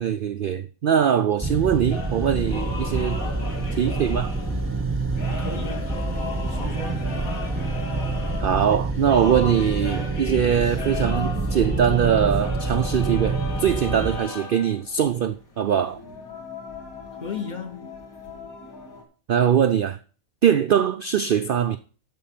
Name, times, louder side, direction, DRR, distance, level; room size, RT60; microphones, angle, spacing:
voice 1, 0.0-3.2 3.8-4.3 8.4-16.0 19.3-20.0 20.4-21.8, right 8 dB, 70° right, 0.5 m, -22 dB
sound 1, 1.4-14.2, right 3 dB, 10° right, 0.8 m, -27 dB
sound 2, 1.9-19.0, left 3 dB, 80° left, 2.3 m, -37 dB
voice 2, 5.4-6.0 6.4-7.1 17.1-17.9, left 6 dB, 40° left, 0.7 m, -35 dB
12.5 x 4.5 x 5.8 m
omnidirectional pair, 1.5 m